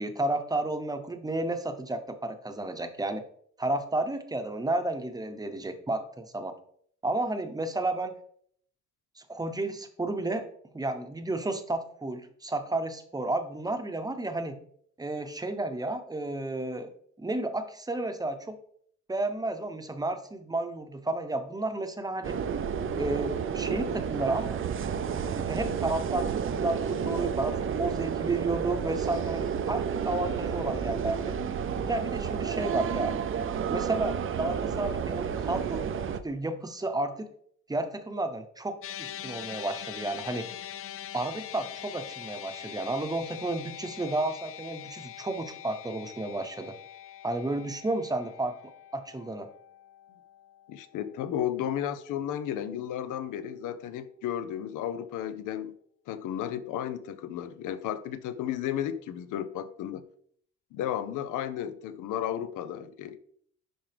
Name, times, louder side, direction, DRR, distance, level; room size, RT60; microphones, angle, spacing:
voice 1, 0.0-3.2 3.6-6.5 7.0-8.1 9.2-10.5 10.7-14.6 15.0-16.9 17.2-18.6 19.1-22.4 22.9-24.6 25.1-31.4 31.9-33.2 33.7-37.3 37.7-40.5 41.1-46.7 47.2-49.5, right 2 dB, 10° right, 8 dB, 0.8 m, -32 dB
sound 1, 22.2-36.2, right 7 dB, 45° right, 0.5 m, -31 dB
sound 2, 38.8-51.3, left 11 dB, 50° left, 0.4 m, -43 dB
voice 2, 50.7-55.7 56.1-60.0 60.7-63.2, left 10 dB, 90° left, 13 dB, 0.7 m, -33 dB
10.5 x 3.6 x 3.4 m, 0.62 s
cardioid pair, 105°, 30 cm